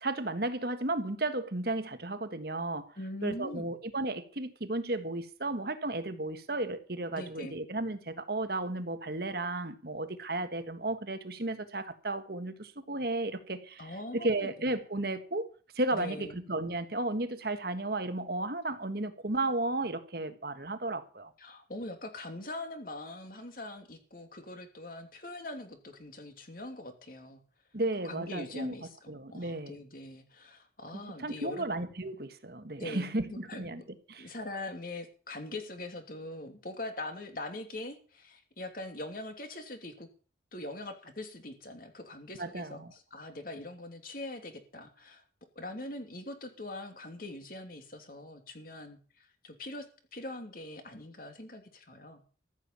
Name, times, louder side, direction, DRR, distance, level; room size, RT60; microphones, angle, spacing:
voice 1, 0.0-2.9 3.2-21.3 27.7-28.7 29.1-29.8 30.9-34.3 42.4-42.9, right 2 dB, 55° right, 1.5 m, -34 dB
voice 2, 3.0-3.7 7.1-7.6 13.8-14.7 15.9-16.4 21.4-27.4 28.0-31.7 32.8-33.6 34.2-40.1 40.5-45.2 45.5-49.8 50.1-52.2, left 2 dB, 50° left, 3.0 m, -42 dB
15.0 x 7.3 x 8.7 m
head